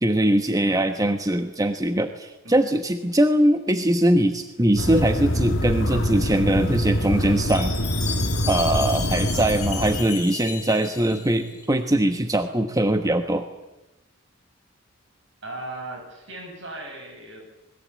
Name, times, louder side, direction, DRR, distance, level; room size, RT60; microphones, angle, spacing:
voice 1, 0.0-7.7 8.5-13.4, right 1 dB, 15° right, 7 dB, 1.1 m, -21 dB
sound 1, 4.8-10.0, equal, 65° left, 1.8 m, -25 dB
Chime, 7.5-11.6, left 6 dB, 35° left, 7.1 m, -33 dB
voice 2, 15.4-17.4, right 2 dB, 65° right, 3 dB, 8.0 m, -37 dB
26.0 x 21.0 x 8.7 m, 1.0 s
head